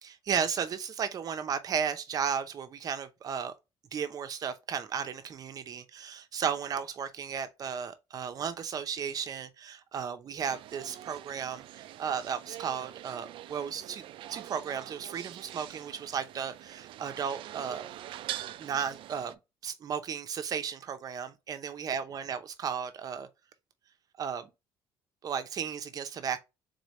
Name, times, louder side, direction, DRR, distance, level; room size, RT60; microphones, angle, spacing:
voice 1, 0.0-3.5 3.9-17.9 18.6-23.3 24.2-24.5 25.2-26.4, right 7 dB, 40° right, 0.7 m, -34 dB
sound 1, 10.4-19.3, right 13 dB, 60° right, 0.3 m, -44 dB
4.0 x 3.3 x 3.9 m
cardioid pair, 145°, 10 cm